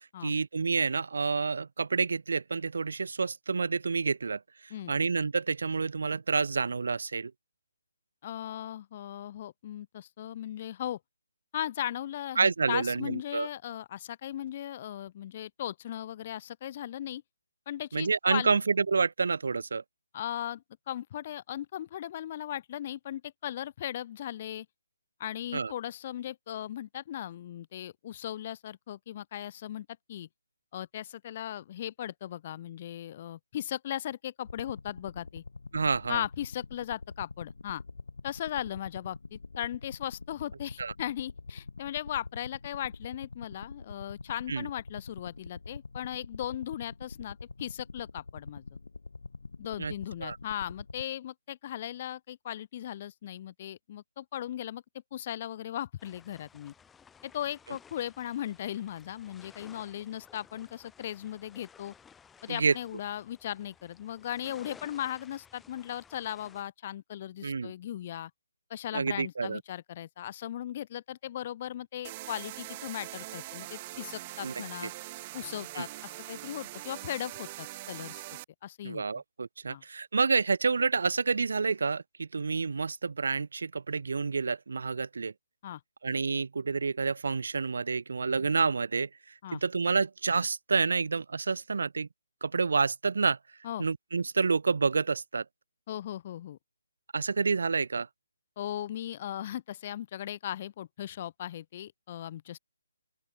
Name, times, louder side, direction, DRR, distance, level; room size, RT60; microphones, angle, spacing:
voice 1, 0.2-4.4 4.9-7.3 12.4-13.5 17.9-19.8 25.5-25.7 35.7-36.2 40.8-40.9 44.5-44.7 49.8-49.9 50.2-50.4 62.5-62.7 67.4-67.7 68.9-69.6 74.4-74.5 74.8-74.9 75.7-75.8 78.8-85.3 86.0-89.1 89.5-92.1 92.4-93.4 93.8-95.4 97.1-98.1, right 4 dB, 65° right, 1.6 m, -28 dB
voice 2, 8.2-11.0 11.5-17.2 17.7-18.6 20.1-24.7 25.2-30.3 30.7-35.4 36.1-37.8 38.2-48.6 49.6-54.8 55.1-56.7 57.2-61.9 62.4-68.3 68.7-74.9 75.3-78.2 78.6-79.0 79.7-79.8 85.6-85.8 89.4-89.6 93.6-93.8 95.9-96.6 98.6-102.6, left 11 dB, 35° left, 0.8 m, -37 dB
sound 1, 34.4-51.0, left 3 dB, 70° left, 2.7 m, -45 dB
sound 2, 56.0-66.6, left 7 dB, 10° left, 3.1 m, -57 dB
sound 3, 72.0-78.4, right 18 dB, 25° right, 3.7 m, -42 dB
open air
figure-of-eight pair, 145°, 0 cm